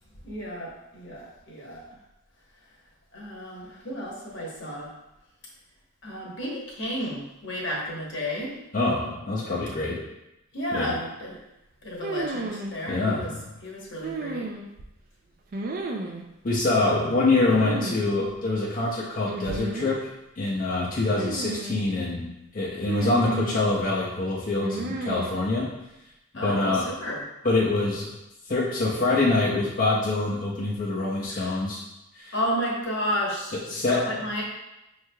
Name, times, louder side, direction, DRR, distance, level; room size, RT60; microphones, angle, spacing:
voice 1, 0.2-1.8 3.1-4.9 6.0-8.5 10.5-11.4 11.8-13.3 13.6-14.5 16.7-17.1 17.5-17.7 26.3-27.2 31.3-31.6 32.3-34.4, equal, 55° left, -3 dB, 1.0 m, -32 dB
voice 2, 8.7-10.0 10.7-10.9 12.9-13.5 16.4-20.1 20.4-25.7 26.4-26.9 27.4-28.2 28.5-31.8 32.1-32.3 33.5-34.2, left 2 dB, 40° left, -4 dB, 0.5 m, -25 dB
sound 1, 12.0-12.7 14.0-14.9 15.5-16.2 17.5-18.0 18.3-18.4 19.2-19.9 21.1-21.8 22.9-23.6 24.6-25.4, right 2 dB, 40° right, 0.3 m, -32 dB
5.6 x 3.1 x 2.2 m, 0.92 s
head